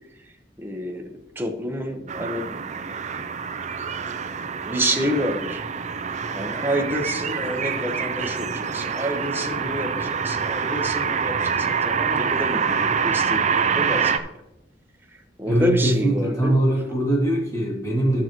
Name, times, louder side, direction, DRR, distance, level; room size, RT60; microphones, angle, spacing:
voice 1, 0.6-2.7 4.6-5.6 6.3-14.2 15.1-16.6, equal, 10° right, 2 dB, 1.1 m, -28 dB
sound 1, 2.1-14.2, right 6 dB, 40° right, 0.5 m, -26 dB
voice 2, 15.4-18.2, right 1 dB, 20° left, -4 dB, 2.4 m, -22 dB
11.5 x 7.6 x 3.0 m, 0.89 s
head